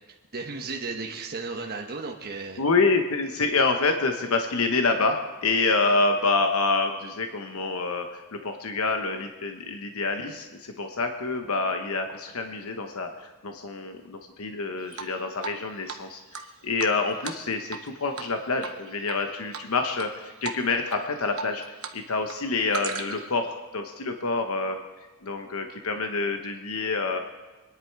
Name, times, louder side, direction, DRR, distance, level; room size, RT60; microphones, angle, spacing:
voice 1, 0.3-2.6, right 3 dB, 45° right, 1 dB, 1.1 m, -34 dB
voice 2, 2.6-21.6 21.9-24.8 25.2-27.2, left 3 dB, 70° left, 5 dB, 1.0 m, -27 dB
Drip, 14.9-15.6 15.9-16.0 16.3-17.9 18.1-18.3 18.6-19.2 19.5-20.1 20.4-20.6 20.9-22.0 22.2-23.3, right 6 dB, 65° right, 1.0 m, -36 dB
25.0 x 10.5 x 4.7 m, 1.3 s
head